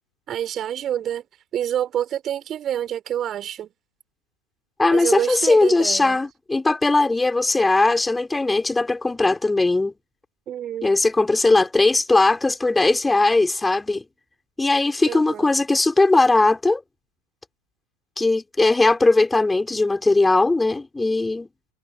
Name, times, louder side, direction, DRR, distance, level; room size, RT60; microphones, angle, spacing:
voice 1, 0.3-1.2 1.5-3.7 4.9-6.2 10.5-11.0 15.1-15.5, right 10 dB, 30° right, 4.3 m, -27 dB
voice 2, 4.8-9.9 10.8-14.0 14.6-16.8 18.2-21.5, left 2 dB, 10° left, 4.0 m, -19 dB
figure-of-eight pair, 90°, 0 cm